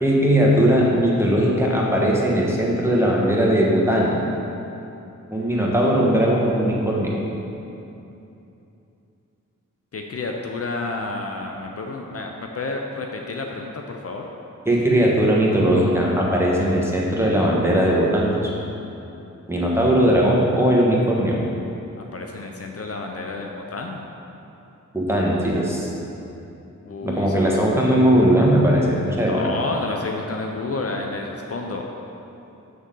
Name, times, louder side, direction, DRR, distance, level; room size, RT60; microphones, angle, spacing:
voice 1, 0.0-4.2 5.3-7.2 14.6-18.5 19.5-21.4 24.9-25.9 27.0-29.5, equal, 10° right, -4 dB, 1.2 m, -19 dB
voice 2, 5.5-5.9 9.9-14.3 22.0-24.0 26.8-27.5 29.2-31.8, left 3 dB, 50° left, 1 dB, 0.6 m, -30 dB
6.9 x 6.4 x 3.8 m, 2.8 s
wide cardioid pair, 95°, 31 cm